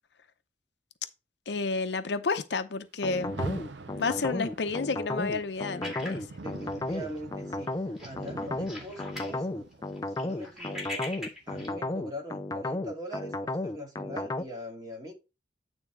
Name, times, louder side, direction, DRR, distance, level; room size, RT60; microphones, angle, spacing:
voice 1, 1.5-3.3 3.9-6.2, left 4 dB, 75° left, 0.6 m, -30 dB
sound 1, 3.0-14.4, left 2 dB, 20° left, 0.4 m, -33 dB
Rain, 3.1-12.2, right 3 dB, 90° right, 0.7 m, -45 dB
sound 2, 5.8-7.2 7.5-7.7 8.0-9.4 9.7-11.7, left 1 dB, ahead, 2.2 m, -41 dB
voice 2, 6.3-7.7 8.0-9.7 10.2-11.1 11.5-15.1, equal, 20° right, 2.3 m, -42 dB
9.0 x 3.5 x 4.7 m
head